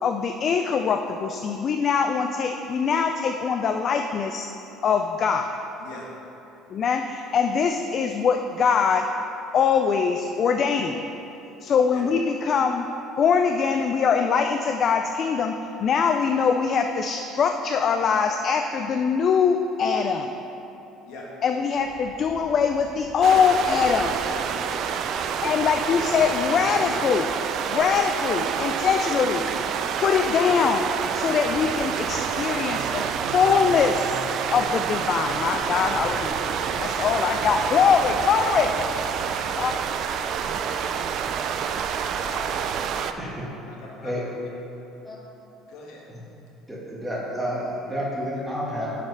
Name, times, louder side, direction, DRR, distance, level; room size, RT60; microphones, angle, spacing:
voice 1, 0.0-4.5 4.8-5.6 6.7-9.1 9.5-11.1 11.6-12.9 13.2-20.3 21.4-24.2 25.4-27.3 27.7-29.5 30.0-30.9 31.1-33.0 33.3-34.2 34.5-36.3 36.8-38.7 39.6-39.7, left 6 dB, 40° left, 6 dB, 0.3 m, -22 dB
sound 1, 21.7-27.1, equal, 25° right, 1.7 m, -47 dB
sound 2, 23.2-43.1, right 7 dB, 50° right, 0.3 m, -28 dB
voice 2, 24.2-25.0 35.5-37.0 38.8-40.0 41.1-41.2 42.2-42.9 43.7-44.1 45.7-46.0, left 2 dB, 75° left, -3 dB, 1.6 m, -43 dB
voice 3, 46.7-49.0, equal, 10° right, -5 dB, 1.5 m, -30 dB
7.3 x 5.1 x 5.3 m, 3.0 s
cardioid pair, 135°, 0 cm